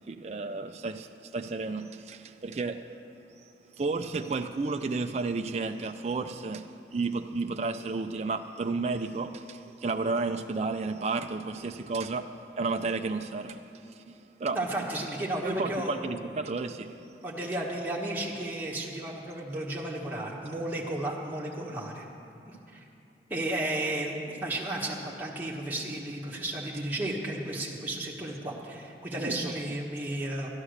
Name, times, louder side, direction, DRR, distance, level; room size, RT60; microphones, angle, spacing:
voice 1, 0.1-2.9 3.4-14.6 15.4-17.1 17.4-17.5 29.2-29.5, right 3 dB, 35° right, 0.4 m, -32 dB
voice 2, 14.5-16.0 17.2-22.0 22.5-22.8 23.3-30.5, right 1 dB, 10° right, 1.2 m, -33 dB
13.0 x 9.9 x 6.5 m
head